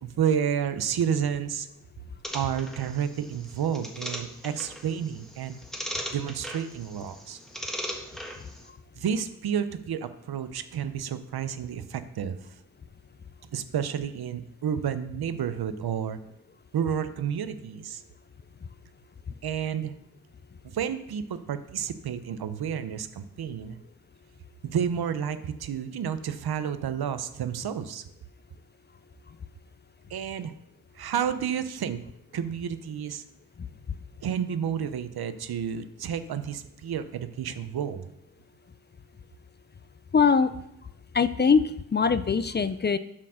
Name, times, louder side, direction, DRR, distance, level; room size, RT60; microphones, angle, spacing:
voice 1, 0.0-1.7 2.3-5.6 6.1-7.4 9.0-12.4 13.5-16.2 16.7-18.0 19.4-19.9 20.6-23.8 24.6-28.0 30.1-30.5 31.0-32.0 32.3-33.2 34.2-38.1, right 8 dB, 80° right, 12 dB, 0.7 m, -30 dB
sound 1, 2.2-8.7, equal, ahead, 1.4 m, -39 dB
voice 2, 40.1-40.5 41.1-41.6 41.9-43.0, left 5 dB, 30° left, 13 dB, 0.4 m, -21 dB
7.2 x 4.7 x 6.3 m, 0.82 s
cardioid pair, 65°, 37 cm